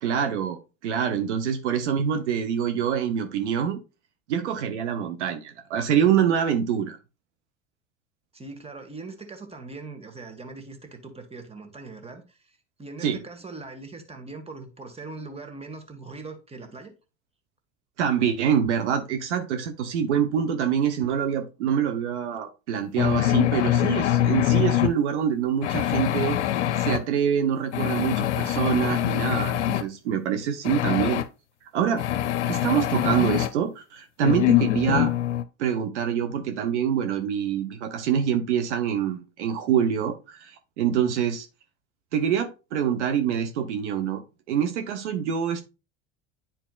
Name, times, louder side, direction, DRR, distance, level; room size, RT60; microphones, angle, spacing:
voice 1, 0.0-3.8 4.3-7.0 13.0-13.2 18.0-26.4 26.8-31.2 31.7-32.0 32.5-35.1 35.6-41.5 42.1-44.2 44.5-45.6, right 8 dB, 80° right, 0.9 m, -25 dB
voice 2, 8.3-16.9, right 3 dB, 15° right, 1.6 m, -41 dB
sound 1, 23.0-24.9 25.6-27.0 27.7-29.8 30.6-31.2 32.0-33.5 34.2-35.4, left 12 dB, 85° left, 0.6 m, -24 dB
10.0 x 4.4 x 2.3 m
hypercardioid pair, 75°, 34 cm